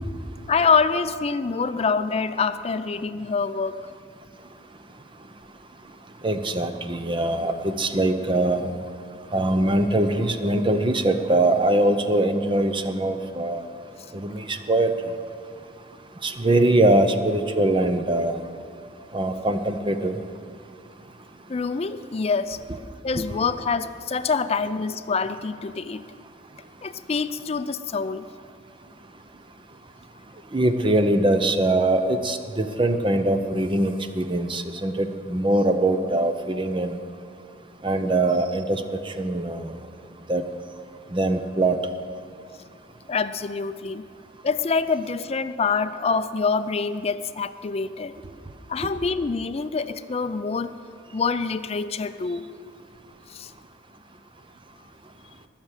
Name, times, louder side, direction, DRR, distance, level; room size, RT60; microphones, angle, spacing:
voice 1, 0.5-3.8 21.5-22.6 23.0-26.0 26.8-28.3 43.1-44.1 44.4-48.2 48.7-50.7 51.1-52.4 53.3-53.5, left 5 dB, 35° left, 12 dB, 0.4 m, -25 dB
voice 2, 6.2-8.7 9.3-13.6 14.1-14.9 16.2-18.4 19.1-20.2 22.7-22.8 30.5-37.0 37.8-38.8 39.2-39.7 40.3-40.4 41.1-41.8, right 1 dB, 25° right, 8 dB, 0.7 m, -22 dB
20.0 x 7.3 x 6.6 m, 2.3 s
head